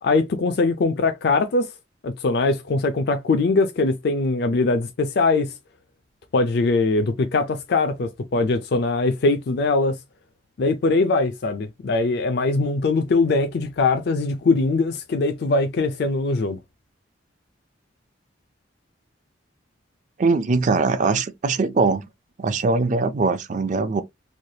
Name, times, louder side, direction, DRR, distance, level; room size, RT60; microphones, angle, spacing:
voice 1, 0.0-1.7 2.0-5.5 6.3-10.0 10.6-16.6, left 3 dB, 55° left, 0.4 m, -21 dB
voice 2, 20.2-22.0 22.4-24.0, right 3 dB, 40° right, 0.4 m, -21 dB
3.2 x 2.2 x 2.7 m
head